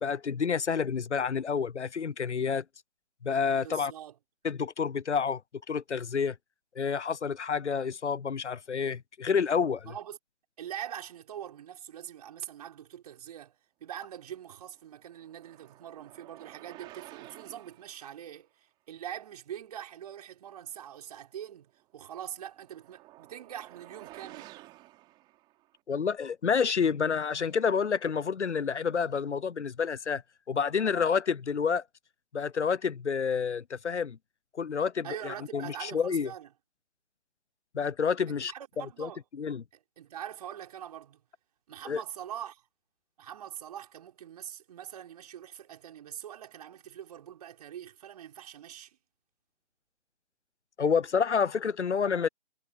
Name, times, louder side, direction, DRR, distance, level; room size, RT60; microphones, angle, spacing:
voice 1, 0.0-2.6 3.2-3.9 4.4-5.4 5.7-6.4 6.8-9.9 25.9-30.2 30.5-31.8 32.3-34.2 34.5-36.3 37.7-38.5 39.0-39.1 39.4-39.6 41.9-42.0 50.8-52.3, left 6 dB, 80° left, 0.7 m, -29 dB
voice 2, 3.6-4.2 9.9-10.2 10.6-13.6 13.8-21.7 21.9-24.5 35.0-36.5 38.3-39.2 39.7-41.2 41.7-42.6 43.2-49.0, right 10 dB, 35° right, 5.6 m, -43 dB
sound 1, 14.7-18.1 22.0-25.7, right 17 dB, 15° right, 3.0 m, -52 dB
figure-of-eight pair, 150°, 34 cm